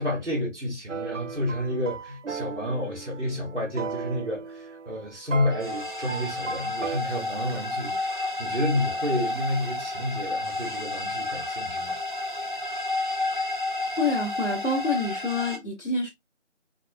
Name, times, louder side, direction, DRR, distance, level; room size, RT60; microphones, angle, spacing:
voice 1, 0.0-12.0, left 1 dB, 70° right, 2.0 m, -30 dB
sound 1, 0.9-7.0, right 5 dB, 90° right, 0.6 m, -36 dB
sound 2, 5.5-15.6, left 2 dB, 45° left, 0.5 m, -31 dB
voice 2, 14.0-16.1, left 3 dB, 75° left, 1.3 m, -27 dB
4.1 x 3.0 x 2.2 m
figure-of-eight pair, 175°, 36 cm